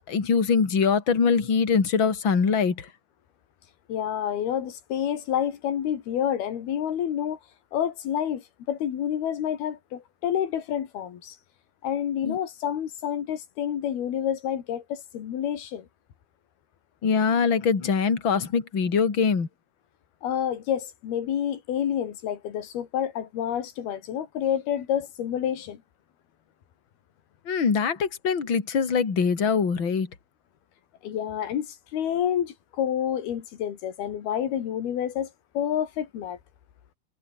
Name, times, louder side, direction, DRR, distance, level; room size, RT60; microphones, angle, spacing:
voice 1, 0.1-2.9 12.2-12.4 17.0-19.5 27.5-30.1, left 6 dB, 35° left, 3.6 m, -23 dB
voice 2, 3.9-7.4 7.7-11.4 11.8-15.9 20.2-25.8 31.0-35.3 35.5-36.4, left 9 dB, 90° left, 4.3 m, -28 dB
omnidirectional pair, 4.3 m